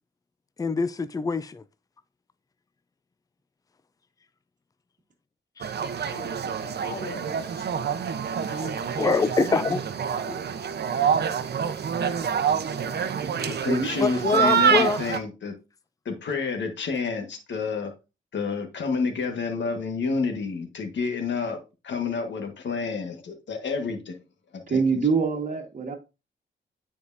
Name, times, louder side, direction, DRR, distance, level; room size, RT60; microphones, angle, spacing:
voice 1, 0.6-1.6 5.6-5.7 9.0-9.8 14.0-15.0, left 4 dB, 20° left, 0.4 m, -24 dB
sound 1, 5.6-15.2, right 7 dB, 60° right, 0.7 m, -26 dB
voice 2, 6.0-7.9 8.5-9.7 10.1-10.5, left 2 dB, 55° left, 2.5 m, -42 dB
voice 3, 13.3-15.5 16.0-17.9 18.3-24.2 24.5-25.0, left 4 dB, 70° left, 1.5 m, -29 dB
voice 4, 24.7-25.9, right 5 dB, 40° right, 1.6 m, -24 dB
9.4 x 4.8 x 2.6 m
cardioid pair, 90°, 19 cm